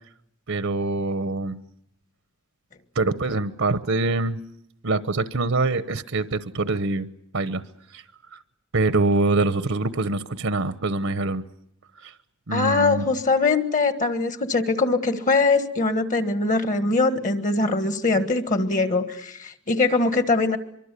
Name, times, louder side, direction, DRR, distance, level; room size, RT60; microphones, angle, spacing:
voice 1, 0.5-1.6 2.9-4.4 4.8-7.1 7.3-7.6 7.9-8.0 8.3-8.4 8.7-11.4 12.0-12.1 12.5-13.0, right 3 dB, 75° right, 13 dB, 1.0 m, -24 dB
voice 2, 12.5-20.6, left 3 dB, 40° left, 10 dB, 1.6 m, -22 dB
24.5 x 24.0 x 8.4 m, 0.75 s
head